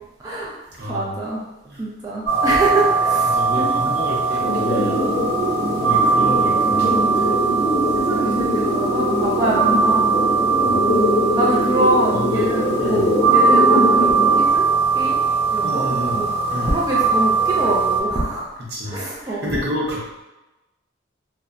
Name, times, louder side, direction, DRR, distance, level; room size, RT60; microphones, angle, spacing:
voice 1, 0.2-0.5 0.9-1.4 1.8-3.9 4.7-5.0 7.2-7.4 7.9-10.2 11.4-14.6 14.9-15.2 15.5-15.8 16.1-16.3 16.6-18.5 18.8-19.6, right 1 dB, 20° right, -5 dB, 0.3 m, -25 dB
voice 2, 0.8-1.2 1.7-1.8 3.2-5.0 5.7-7.3 10.6-10.8 12.1-12.5 12.8-13.1 15.6-16.2 16.5-16.7 18.7-20.2, left 1 dB, 55° right, -5 dB, 0.7 m, -29 dB
sound 1, 2.2-18.0, right 4 dB, 15° left, 0.6 m, -20 dB
sound 2, 4.4-14.4, equal, 50° left, 0.6 m, -22 dB
2.8 x 2.1 x 2.4 m, 1.0 s
head